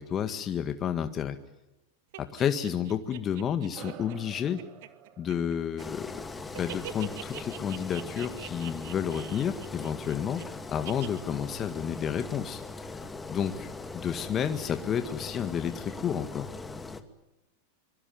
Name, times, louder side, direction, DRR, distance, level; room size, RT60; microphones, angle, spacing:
voice 1, 0.0-1.4 2.2-4.6 5.2-6.2 6.6-12.6 12.9-16.5, left 8 dB, 30° left, 8 dB, 1.8 m, -31 dB
sound 1, 2.1-6.1 6.4-10.4 10.9-11.2, right 15 dB, 60° right, 2.3 m, -44 dB
sound 2, 3.7-8.5, right 11 dB, 45° right, 2.7 m, -51 dB
Engine, 5.8-17.0, left 3 dB, 15° left, 2.3 m, -40 dB
25.5 x 23.5 x 9.4 m, 0.95 s
hypercardioid pair, 100°, 0 cm